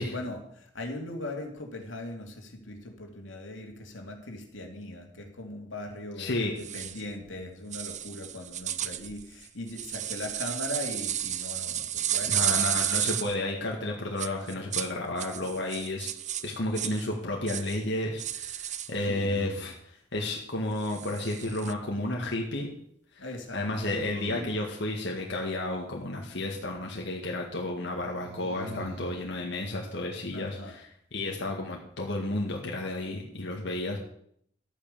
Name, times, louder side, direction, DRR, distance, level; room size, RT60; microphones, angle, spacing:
voice 1, 0.0-12.7 12.9-13.0 18.8-19.4 23.2-23.6 30.3-30.7, left 1 dB, 85° left, 3 dB, 2.7 m, -39 dB
voice 2, 6.2-6.5 12.3-16.1 16.4-22.7 23.1-23.3 23.5-34.0, left 2 dB, 65° left, 0 dB, 2.0 m, -32 dB
sound 1, 6.6-7.0 7.7-13.3 14.2-14.9 15.2-17.1 17.5-17.8 18.2-18.9 20.8-21.7, right 11 dB, 40° right, 0.6 m, -32 dB
sound 2, 16.1-16.8 18.9-19.8 23.6-24.6 28.0-29.2, right 1 dB, 60° right, 2.7 m, -42 dB
13.0 x 9.0 x 6.9 m, 0.66 s
head